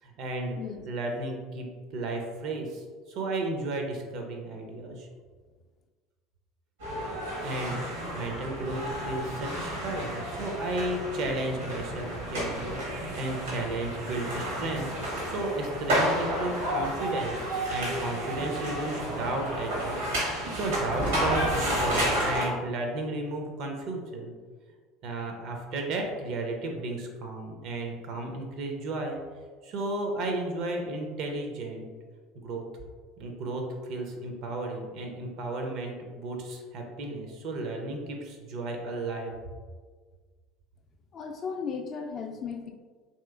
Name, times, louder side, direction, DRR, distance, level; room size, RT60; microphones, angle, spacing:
voice 1, 0.0-0.6 0.9-1.7 1.9-5.1 7.4-7.8 8.1-20.0 20.5-24.3 25.0-29.2 29.6-31.9 32.4-32.6 33.2-39.4, right 2 dB, 60° right, 2 dB, 0.5 m, -33 dB
voice 2, 0.6-0.9 41.1-42.7, left 6 dB, 45° left, 4 dB, 0.3 m, -35 dB
sound 1, 6.8-22.4, equal, 85° right, 1.1 m, -31 dB
3.0 x 2.8 x 2.3 m, 1.5 s
hypercardioid pair, 70°, 0 cm